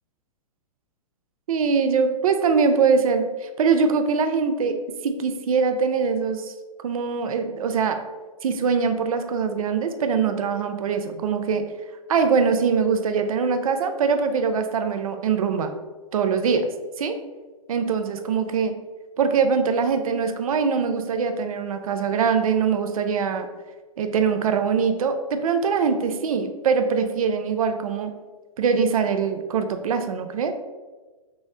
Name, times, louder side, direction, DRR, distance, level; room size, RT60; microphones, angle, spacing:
voice 1, 1.5-6.5 6.8-8.0 8.4-11.6 12.1-15.7 16.1-16.7 17.0-17.2 17.7-18.7 19.2-23.5 24.0-28.1 28.6-30.5, right 5 dB, 75° right, 8 dB, 0.5 m, -23 dB
3.9 x 2.0 x 3.6 m, 1.3 s
hypercardioid pair, 125°, 18 cm